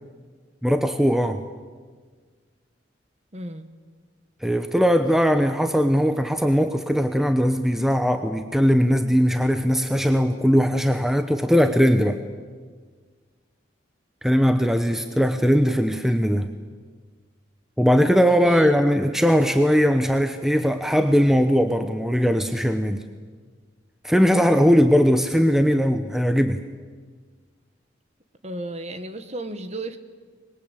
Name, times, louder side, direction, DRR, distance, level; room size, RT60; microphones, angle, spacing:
voice 1, 0.6-1.4 4.4-12.2 14.2-16.5 17.8-23.0 24.0-26.6, equal, ahead, 7 dB, 0.9 m, -20 dB
voice 2, 3.3-3.7 18.4-18.8 28.4-30.0, right 1 dB, 35° right, 9 dB, 1.6 m, -33 dB
25.0 x 21.5 x 8.4 m, 1.5 s
head